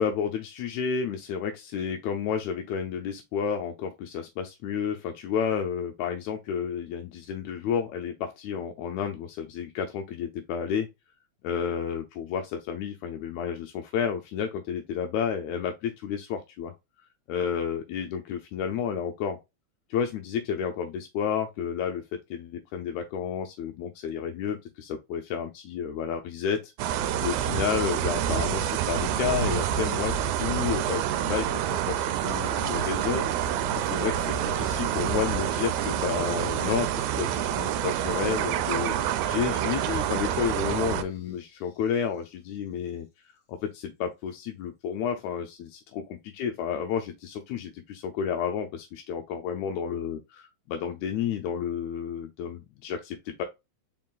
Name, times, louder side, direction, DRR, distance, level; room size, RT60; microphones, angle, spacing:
voice 1, 0.0-10.9 11.4-16.7 17.3-19.4 19.9-22.1 22.3-26.7 27.2-33.3 33.7-39.0 39.3-43.1 43.5-53.4, left 7 dB, 85° left, 1.9 m, -31 dB
sound 1, 26.8-41.0, right 10 dB, 90° right, 2.0 m, -27 dB
sound 2, 32.2-42.3 42.6-42.7, equal, 50° left, 1.8 m, -47 dB
4.7 x 3.7 x 2.4 m
omnidirectional pair, 3.3 m